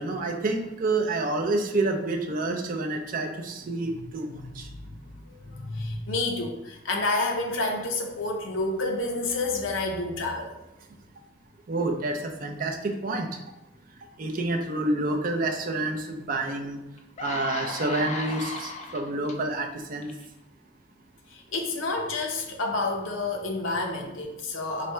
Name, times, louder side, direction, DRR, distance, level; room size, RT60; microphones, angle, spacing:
voice 1, 0.0-4.7 11.7-13.3 14.2-16.8 17.2-20.1, right 2 dB, 45° right, 3 dB, 0.5 m, -28 dB
voice 2, 3.9-10.5 21.3-24.9, left 2 dB, 75° left, 2 dB, 0.6 m, -30 dB
sound 1, 16.4-16.5 17.0-19.3 20.0-20.2, left 5 dB, 35° left, 0.4 m, -35 dB
3.2 x 2.6 x 4.4 m, 0.94 s
head